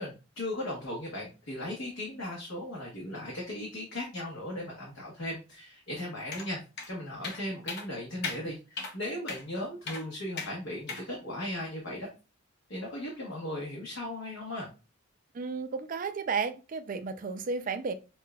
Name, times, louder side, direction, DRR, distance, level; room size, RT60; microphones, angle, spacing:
voice 1, 0.0-6.6 6.9-12.1 12.7-14.7, left 1 dB, 75° left, 1.0 m, -37 dB
sound 1, 6.3-6.5 6.8-6.9 7.2-7.4 7.7-7.9 8.2-8.4 8.8-8.9 9.3-9.4 9.9-10.0 10.4-10.5 10.9-11.1, left 4 dB, 55° left, 0.7 m, -36 dB
voice 2, 15.3-17.9, right 5 dB, 40° right, 0.3 m, -33 dB
5.6 x 2.2 x 2.2 m
head